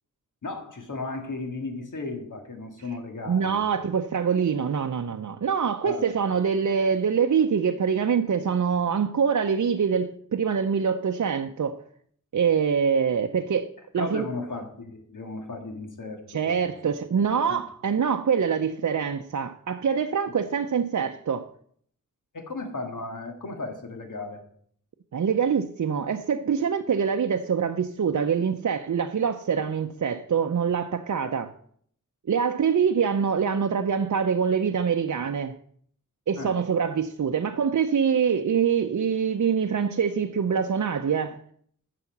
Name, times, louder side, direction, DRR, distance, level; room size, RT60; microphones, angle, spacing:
voice 1, 0.4-3.6 5.8-6.1 14.0-16.7 17.5-17.6 22.3-24.4 31.2-31.3 36.4-36.6, left 3 dB, 70° left, 2.0 m, -35 dB
voice 2, 3.3-11.8 12.3-14.3 16.3-21.5 25.1-31.5 32.3-35.5 36.3-41.4, right 6 dB, 65° right, 0.6 m, -25 dB
9.7 x 5.8 x 7.2 m
wide cardioid pair, 85°, 32 cm